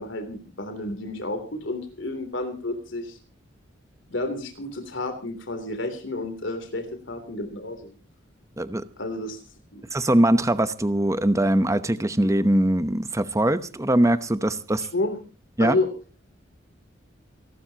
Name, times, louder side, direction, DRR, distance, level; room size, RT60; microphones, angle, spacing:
voice 1, 0.0-3.2 4.1-7.9 9.0-9.4 9.7-9.8 14.9-15.2 15.6-15.9, left 2 dB, 75° left, 7 dB, 3.2 m, -30 dB
voice 2, 9.9-14.9 15.6-15.7, right 1 dB, 15° right, 12 dB, 0.9 m, -21 dB
29.0 x 12.5 x 2.9 m, 0.34 s
head